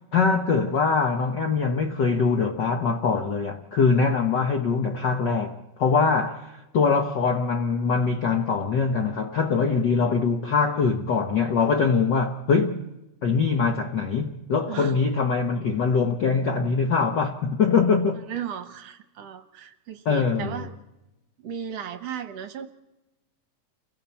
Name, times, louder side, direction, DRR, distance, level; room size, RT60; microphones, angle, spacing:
voice 1, 0.1-12.8 13.2-18.2 20.0-20.7, left 5 dB, 65° left, 1.1 m, -23 dB
voice 2, 14.7-15.0 18.3-20.7 21.4-22.7, right 8 dB, 65° right, 1.9 m, -35 dB
29.5 x 23.0 x 4.4 m
omnidirectional pair, 3.4 m